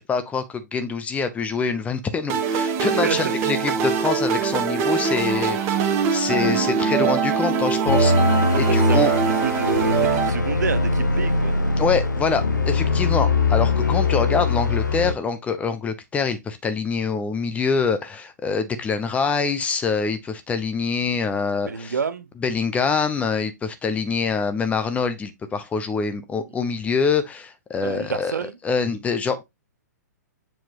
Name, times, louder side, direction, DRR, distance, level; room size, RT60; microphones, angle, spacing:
voice 1, 0.0-9.1 11.8-21.9 22.4-29.4, left 5 dB, 15° left, 0.9 m, -25 dB
sound 1, 2.3-10.3, right 6 dB, 30° right, 1.2 m, -22 dB
voice 2, 2.8-3.3 8.5-11.6 21.6-22.3 27.8-28.6, right 6 dB, 75° right, 1.0 m, -29 dB
sound 2, 7.9-15.1, left 3 dB, 90° left, 0.9 m, -21 dB
7.4 x 4.5 x 3.0 m
figure-of-eight pair, 120°, 10 cm